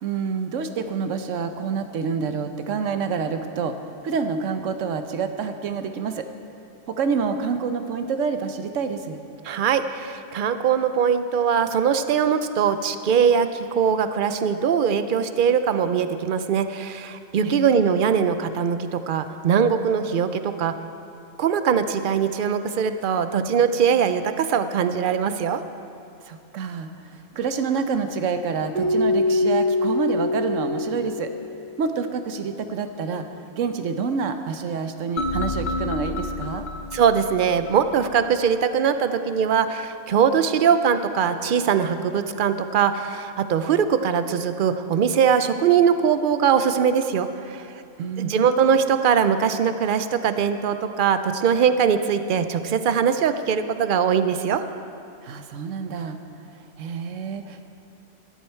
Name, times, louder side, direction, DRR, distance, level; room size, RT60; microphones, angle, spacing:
voice 1, 0.0-3.8 4.0-6.3 6.9-9.2 17.4-17.9 26.2-31.3 31.8-33.2 33.5-36.7 48.0-48.6 55.2-56.2 56.8-57.6, right 5 dB, 90° right, 8 dB, 1.1 m, -27 dB
voice 2, 9.4-20.7 21.4-25.6 36.9-47.7 48.2-54.6, right 7 dB, 55° right, 10 dB, 0.6 m, -21 dB
Keyboard (musical), 28.7-31.6, left 2 dB, 40° right, 2.7 m, -23 dB
sound 1, 35.2-38.2, left 3 dB, 40° left, 1.1 m, -30 dB
14.0 x 11.0 x 4.5 m, 2.6 s
omnidirectional pair, 1.3 m